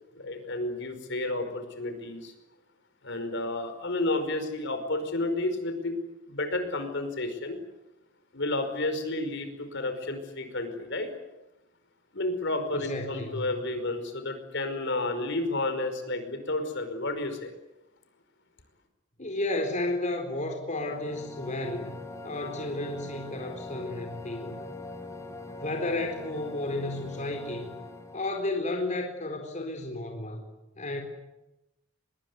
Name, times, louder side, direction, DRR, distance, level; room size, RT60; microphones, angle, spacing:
voice 1, 0.1-2.3 3.0-6.0 6.3-7.6 8.3-11.1 12.1-17.5, left 2 dB, 60° left, 8 dB, 5.1 m, -31 dB
voice 2, 12.7-13.5 19.2-22.0 22.2-24.6 25.6-27.8 28.1-30.5 30.8-31.0, left 2 dB, 35° left, 3 dB, 4.1 m, -32 dB
sound 1, 20.6-28.5, left 2 dB, 15° left, 4.1 m, -42 dB
24.5 x 22.5 x 9.6 m, 0.95 s
head